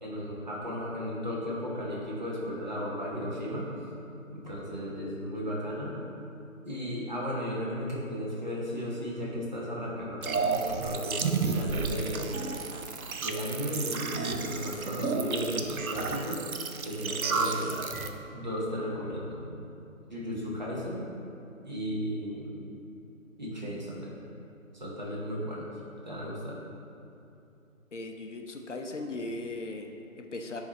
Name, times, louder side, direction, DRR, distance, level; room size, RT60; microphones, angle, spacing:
voice 1, 0.0-3.7 4.3-6.0 6.6-12.4 13.2-16.4 16.8-17.8 18.3-19.6 20.1-21.0 21.6-22.6 23.4-24.1 24.7-25.7 26.0-26.6, equal, 35° right, -5 dB, 1.0 m, -35 dB
sound 1, 10.2-18.1, right 4 dB, 90° right, 0.6 m, -32 dB
voice 2, 27.9-30.6, left 2 dB, 60° left, 3 dB, 0.6 m, -38 dB
9.0 x 4.1 x 3.0 m, 2.7 s
figure-of-eight pair, 160°, 41 cm